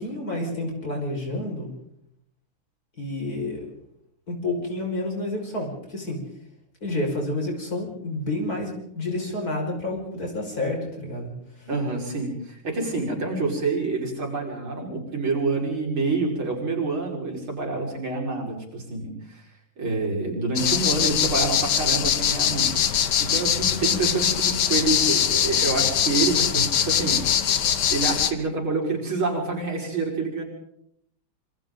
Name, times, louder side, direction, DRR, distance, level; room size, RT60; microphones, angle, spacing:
voice 1, 0.0-1.7 3.0-3.7 4.3-6.2 6.8-11.3 11.6-11.7, left 2 dB, 45° left, 0 dB, 6.0 m, -29 dB
voice 2, 11.7-19.4 19.8-22.7 23.2-27.4 27.9-30.4, right 3 dB, 80° right, -2 dB, 6.1 m, -27 dB
sound 1, 20.6-28.3, left 9 dB, 60° left, 1.5 m, -22 dB
27.0 x 25.0 x 3.9 m, 0.73 s
omnidirectional pair, 2.2 m